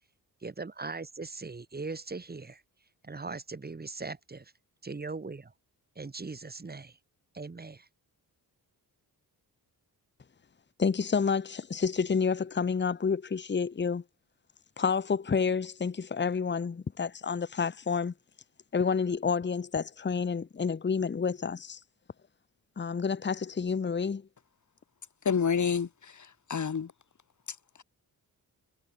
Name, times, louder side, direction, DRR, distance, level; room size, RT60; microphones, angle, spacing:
voice 1, 0.4-2.6 3.0-4.5 4.8-5.5 6.0-7.0 7.3-7.9, right 3 dB, 25° right, 2.1 m, -40 dB
voice 2, 10.8-14.0 14.8-18.1 18.7-21.8 22.8-24.3, left 5 dB, 30° left, 1.2 m, -29 dB
voice 3, 25.3-26.9, left 6 dB, 50° left, 3.6 m, -29 dB
wide cardioid pair, 120°, 38 cm